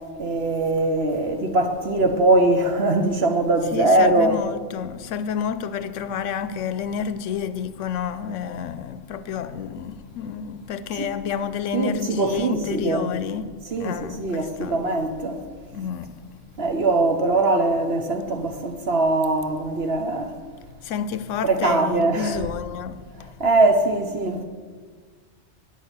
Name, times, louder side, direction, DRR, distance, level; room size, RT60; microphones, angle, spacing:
voice 1, 0.2-4.4 10.9-11.1 11.7-13.1 13.7-15.4 16.6-20.3 21.4-22.4 23.4-24.4, right 2 dB, 55° right, 1.1 m, -21 dB
voice 2, 3.7-13.5 13.8-14.9 15.7-16.1 20.8-23.0 23.4-23.5, left 7 dB, 75° left, 0.9 m, -29 dB
9.2 x 6.7 x 8.0 m
omnidirectional pair, 1.3 m